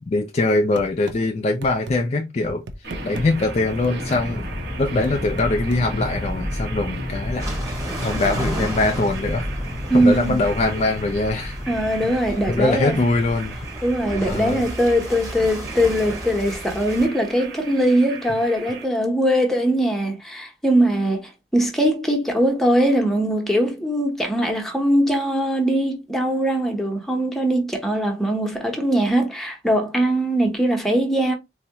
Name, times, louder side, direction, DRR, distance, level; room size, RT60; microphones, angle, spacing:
voice 1, 0.0-2.6 3.0-4.4 4.8-7.8 8.0-9.5 9.9-11.6 12.5-13.6 14.2-14.7, left 2 dB, 35° left, 0.3 m, -22 dB
sound 1, 0.8-1.2 1.6-2.0 2.4-3.3 3.8-4.3 5.0-5.9, right 2 dB, 75° right, 0.6 m, -35 dB
sound 2, 2.8-18.8, equal, 60° right, 1.0 m, -32 dB
sound 3, 7.4-17.1, right 1 dB, 15° right, 1.0 m, -34 dB
voice 2, 9.9-10.4 11.7-13.0 13.8-31.3, right 1 dB, ahead, 0.8 m, -21 dB
4.1 x 2.2 x 2.8 m
head